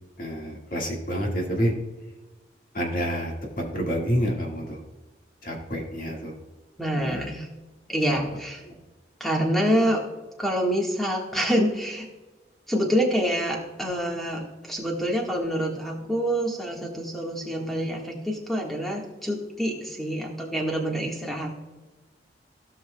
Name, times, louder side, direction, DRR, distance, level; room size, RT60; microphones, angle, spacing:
voice 1, 0.2-1.7 2.7-4.8 5.4-6.3 6.9-7.3 8.1-8.4 8.7-8.8, equal, 50° left, 0 dB, 1.8 m, -28 dB
voice 2, 6.8-7.5 7.9-8.6 9.2-10.0 10.4-12.1 12.7-21.5, equal, ahead, -1 dB, 1.5 m, -26 dB
16.5 x 5.8 x 2.2 m, 1.2 s
head